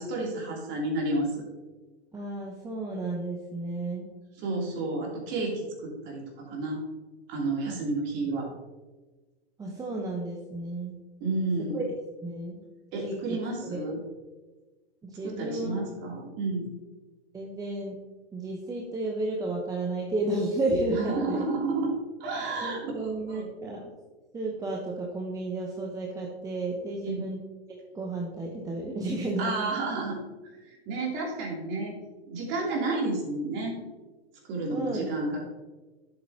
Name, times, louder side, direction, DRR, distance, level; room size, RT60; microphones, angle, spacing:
voice 1, 0.0-1.4 4.3-6.8 7.3-8.5 11.2-11.8 12.9-14.0 15.2-16.7 20.9-21.9 22.2-23.5 27.0-27.3 29.4-30.2 30.6-31.9 32.3-33.8 34.4-35.5, right 2 dB, 35° right, -2 dB, 3.2 m, -31 dB
voice 2, 2.1-4.0 7.7-7.8 9.6-11.0 11.7-11.9 12.2-12.6 13.0-13.2 13.6-13.9 15.0-15.8 17.3-18.0 18.3-21.4 22.6-23.8 24.3-27.4 27.7-29.6 34.7-35.1, right 2 dB, 10° right, -1 dB, 1.0 m, -32 dB
11.5 x 7.8 x 2.9 m, 1.2 s
hypercardioid pair, 115°, 32 cm